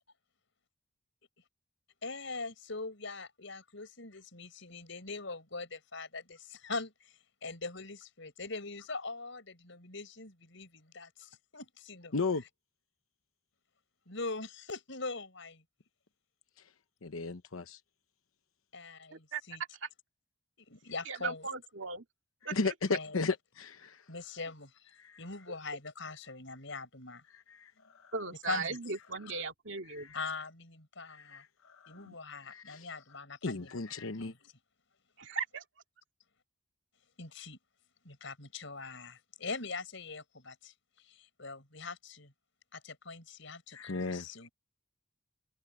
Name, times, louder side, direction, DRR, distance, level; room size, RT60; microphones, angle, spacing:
voice 1, 2.0-7.1 7.4-12.1 14.1-15.6 18.7-18.9 19.2-19.6 20.6-21.5 22.9-23.1 24.1-24.8 25.2-27.2 28.5-28.8 30.1-31.4 31.9-33.7 34.0-34.5 37.2-37.6 38.0-42.3 42.7-44.5, left 3 dB, 65° left, 6.1 m, -42 dB
voice 2, 12.1-12.4 17.0-17.8 22.5-24.0 25.0-25.2 26.2-26.3 27.3-28.1 29.9-30.2 31.0-32.1 32.4-32.9 33.4-34.3 43.7-44.5, left 3 dB, 90° left, 1.0 m, -36 dB
voice 3, 21.1-22.0 22.4-22.7 25.5-25.6 28.1-30.1 32.0-32.2 35.2-35.6, right 4 dB, 65° right, 2.5 m, -38 dB
head